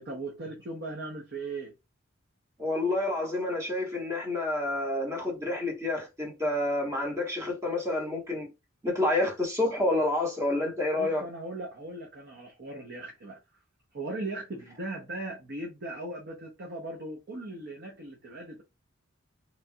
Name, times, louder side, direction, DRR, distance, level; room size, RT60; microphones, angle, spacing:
voice 1, 0.0-1.7 11.0-13.4 13.9-18.6, right 2 dB, 55° right, 0.7 m, -38 dB
voice 2, 2.6-8.5 8.8-11.2, left 2 dB, 15° right, 1.1 m, -29 dB
3.1 x 2.3 x 2.7 m
head